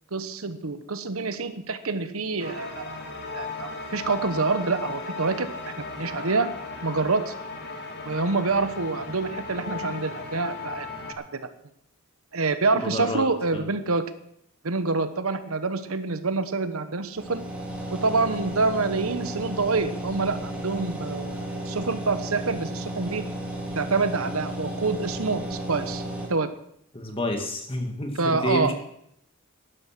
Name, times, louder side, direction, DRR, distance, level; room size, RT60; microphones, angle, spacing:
voice 1, 0.1-2.9 3.3-5.5 6.0-6.5 6.8-7.3 8.0-10.9 11.3-11.5 12.3-14.0 14.6-17.4 18.0-23.2 23.7-26.0 26.3-26.5 28.2-28.7, right 3 dB, 75° right, 11 dB, 1.1 m, -26 dB
sound 1, 2.4-11.1, left 4 dB, 50° left, 2.0 m, -36 dB
voice 2, 12.7-13.2 13.5-13.7 26.9-28.7, left 1 dB, 25° left, 3 dB, 2.1 m, -29 dB
sound 2, 17.1-26.3, right 1 dB, 5° right, 3.1 m, -33 dB
12.5 x 11.0 x 6.1 m, 0.73 s
head